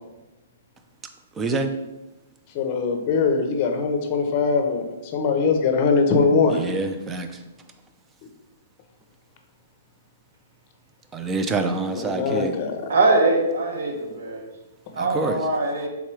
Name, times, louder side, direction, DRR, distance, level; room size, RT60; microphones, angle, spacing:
voice 1, 1.4-1.7 6.5-7.3 11.1-12.5 15.0-15.4, right 3 dB, 15° right, 7 dB, 0.3 m, -26 dB
voice 2, 2.5-4.9 5.1-6.6 11.9-12.9, left 4 dB, 35° left, 5 dB, 0.6 m, -21 dB
voice 3, 12.9-14.5 14.9-15.9, right 2 dB, 75° right, 1 dB, 1.1 m, -22 dB
3.7 x 3.0 x 4.6 m, 1.0 s
hypercardioid pair, 160°, 0 cm